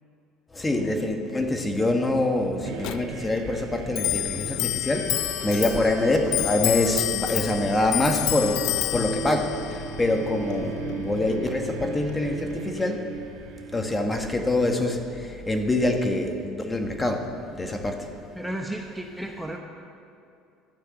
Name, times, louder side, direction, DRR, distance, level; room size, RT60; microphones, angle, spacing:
voice 1, 0.5-13.1 13.7-18.1, left 2 dB, 15° left, 4 dB, 1.5 m, -25 dB
sound 1, 2.6-14.7, right 5 dB, 80° right, 1.4 m, -39 dB
Clock, 2.8-12.7, left 15 dB, 65° left, 0.4 m, -30 dB
voice 2, 18.3-19.6, right 1 dB, 5° right, 1 dB, 1.0 m, -33 dB
12.5 x 6.6 x 8.9 m, 2.5 s
supercardioid pair, 95°, 0 cm